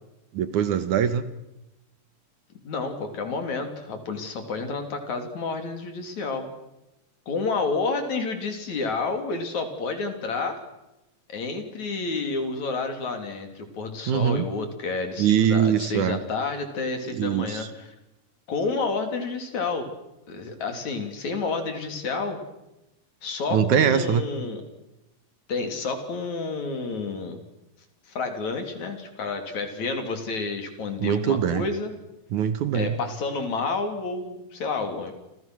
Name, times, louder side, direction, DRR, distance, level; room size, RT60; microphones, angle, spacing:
voice 1, 0.3-1.2 14.1-14.5 15.2-16.2 17.2-17.7 23.5-24.2 31.0-31.7 32.3-32.9, right 8 dB, 65° right, 11 dB, 2.6 m, -22 dB
voice 2, 2.6-6.5 7.3-10.6 11.3-17.9 18.5-19.9 20.3-22.4 23.2-24.6 25.5-27.4 28.1-31.9 32.7-35.1, left 4 dB, 55° left, 5 dB, 4.4 m, -30 dB
30.0 x 26.5 x 6.3 m, 0.93 s
omnidirectional pair, 3.9 m